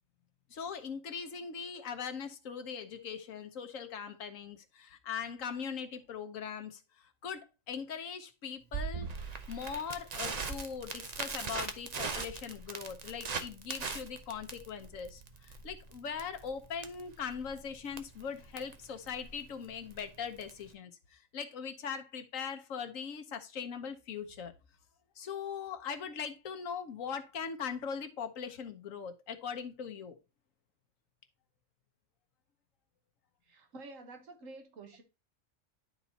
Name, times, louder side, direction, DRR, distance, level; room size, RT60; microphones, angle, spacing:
voice 1, 0.5-24.5 25.2-30.2, left 6 dB, 90° left, 1.4 m, -40 dB
Crackle, 8.7-20.7, right 5 dB, 40° right, 0.7 m, -41 dB
voice 2, 33.4-35.0, right 3 dB, 80° right, 1.6 m, -49 dB
12.0 x 4.1 x 2.8 m
omnidirectional pair, 1.3 m